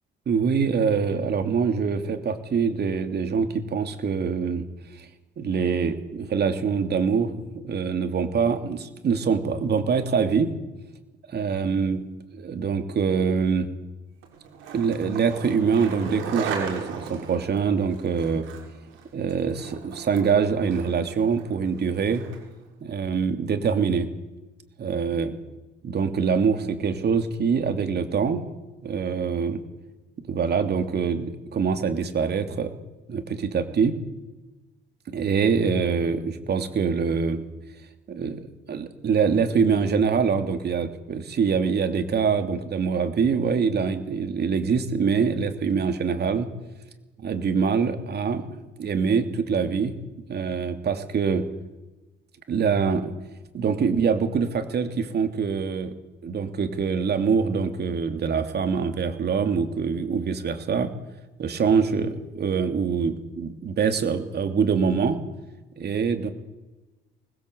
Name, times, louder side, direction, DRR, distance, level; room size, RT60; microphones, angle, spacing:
voice 1, 0.3-4.7 5.0-5.1 5.4-10.5 11.3-12.1 12.3-13.7 14.7-18.5 19.1-22.2 22.8-24.1 24.8-25.4 25.8-28.4 28.8-29.6 30.2-32.7 33.1-34.0 35.1-37.4 38.1-46.5 47.2-48.5 48.8-49.9 50.3-51.4 52.5-53.1 53.5-55.9 56.2-60.9 61.4-65.2 65.8-66.3, right 6 dB, 55° right, 8 dB, 3.0 m, -24 dB
Skateboard, 14.2-22.6, right 6 dB, 90° right, 6.0 m, -37 dB
24.5 x 20.5 x 8.2 m, 1.1 s
cardioid pair, 90°, 20 cm